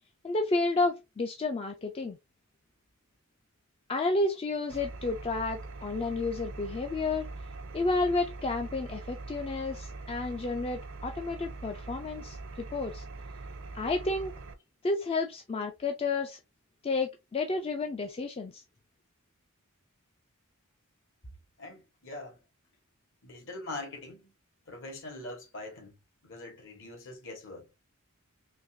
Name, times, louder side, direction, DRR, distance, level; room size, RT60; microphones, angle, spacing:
voice 1, 0.2-2.2 3.9-7.3 7.7-12.4 12.7-13.0 13.7-14.3 14.8-16.4 16.8-18.6, left 3 dB, 25° left, 0.3 m, -31 dB
Engine, 4.7-14.5, right 3 dB, 60° right, 0.5 m, -42 dB
voice 2, 21.6-22.4 23.2-24.3 24.7-26.0 26.2-27.7, left 2 dB, 60° left, 1.4 m, -43 dB
3.9 x 2.8 x 2.6 m
head